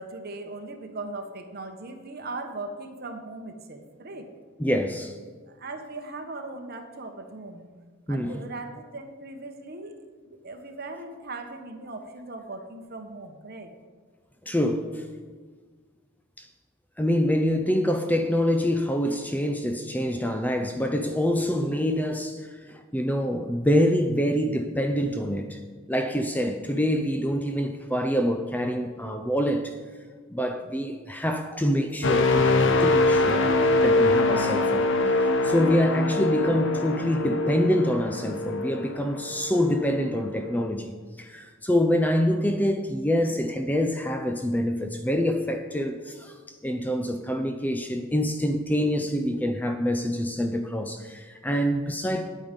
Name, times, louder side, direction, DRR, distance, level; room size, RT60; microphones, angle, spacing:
voice 1, 0.0-4.3 5.5-7.7 8.1-10.0 10.2-13.7, right 2 dB, 50° right, 1.2 m, -39 dB
voice 2, 4.6-5.2 8.1-8.4 14.5-15.1 16.4-16.5 17.0-25.6 25.9-29.7 30.3-33.5 33.8-46.3 46.6-52.3, equal, 10° left, 0.5 m, -26 dB
sound 1, 32.0-39.8 40.3-40.5, left 2 dB, 60° left, 0.7 m, -23 dB
9.7 x 8.7 x 5.2 m
head